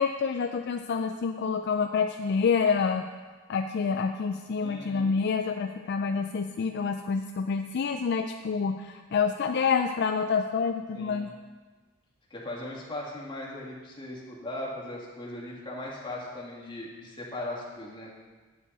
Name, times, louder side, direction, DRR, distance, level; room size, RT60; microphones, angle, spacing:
voice 1, 0.0-3.1 3.5-11.3, left 5 dB, 55° left, 6 dB, 0.4 m, -27 dB
voice 2, 4.6-5.2 10.9-11.3 12.3-18.2, left 1 dB, 25° left, -4 dB, 2.0 m, -38 dB
9.4 x 8.4 x 4.2 m, 1.4 s
head